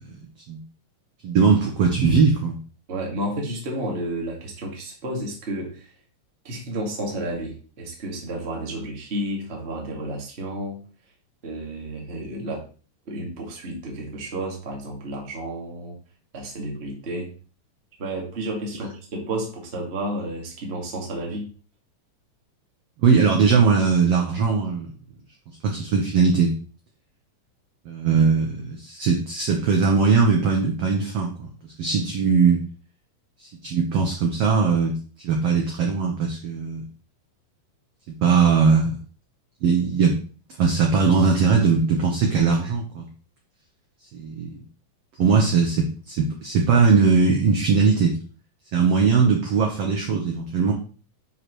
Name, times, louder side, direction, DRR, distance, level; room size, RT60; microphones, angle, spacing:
voice 1, 1.2-2.6 23.0-24.9 25.6-26.5 27.8-32.6 33.4-35.0 35.2-36.9 38.1-39.0 39.6-40.2 40.6-43.1 44.1-44.5 45.2-48.2 48.7-50.7, right 5 dB, 70° right, 1 dB, 1.5 m, -20 dB
voice 2, 2.9-5.9 6.4-10.8 11.4-12.7 13.0-16.0 16.3-17.4 18.0-21.5, right 1 dB, 30° right, -1 dB, 1.2 m, -31 dB
9.9 x 4.8 x 3.1 m, 0.38 s
omnidirectional pair, 4.1 m